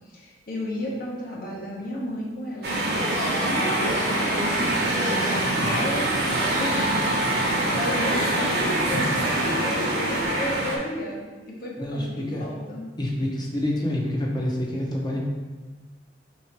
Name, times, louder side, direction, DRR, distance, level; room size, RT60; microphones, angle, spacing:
voice 1, 0.1-2.8 3.5-5.1 5.7-7.0 7.3-12.9, equal, 50° left, -4 dB, 1.0 m, -33 dB
sound 1, 2.6-10.8, right 1 dB, 60° right, 0.9 m, -24 dB
sound 2, 2.8-6.7, right 1 dB, 20° right, 0.8 m, -37 dB
voice 2, 5.3-5.8 11.8-12.5 13.0-15.2, left 1 dB, 25° left, -2 dB, 0.7 m, -28 dB
3.7 x 3.0 x 4.5 m, 1.3 s
head